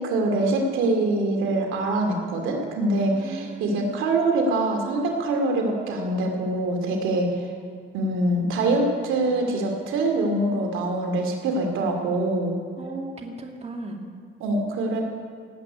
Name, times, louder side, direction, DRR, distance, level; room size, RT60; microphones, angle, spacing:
voice 1, 0.0-7.5 7.9-12.6 14.4-15.0, right 2 dB, 90° right, 2 dB, 2.6 m, -24 dB
voice 2, 3.1-4.0 12.8-14.0, right 2 dB, 30° right, 2 dB, 2.3 m, -36 dB
17.0 x 8.4 x 9.8 m, 2.1 s
cardioid pair, 90°, 20 cm